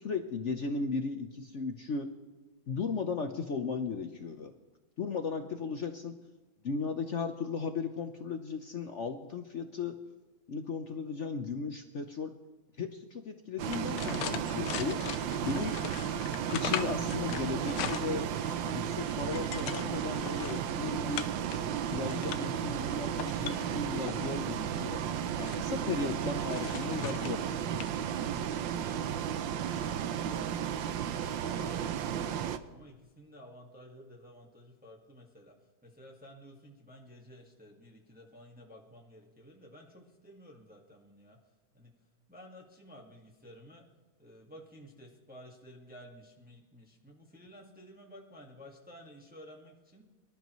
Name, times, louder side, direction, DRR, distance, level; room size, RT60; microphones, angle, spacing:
voice 1, 0.0-2.1 2.7-4.5 5.0-6.1 6.6-10.0 10.5-12.3 12.8-15.0 15.4-15.7 16.5-18.3 18.6-21.3 21.9-25.0 25.4-27.4, left 4 dB, 65° left, 6 dB, 0.7 m, -36 dB
sound 1, 13.6-18.6 19.0-20.6 21.2-21.6 22.0-22.6 23.1-24.3 25.0-25.6 26.5-27.4 27.8-27.9 28.3-28.4, left 11 dB, 80° left, 1.4 m, -40 dB
Bus, 13.6-32.6, right 9 dB, 75° right, 1.4 m, -34 dB
voice 2, 28.6-29.5 29.9-35.5 35.8-41.4 41.7-41.9 42.3-43.8 44.2-50.0, equal, 5° right, -1 dB, 1.6 m, -53 dB
24.5 x 12.0 x 3.1 m, 1.2 s
omnidirectional pair, 2.2 m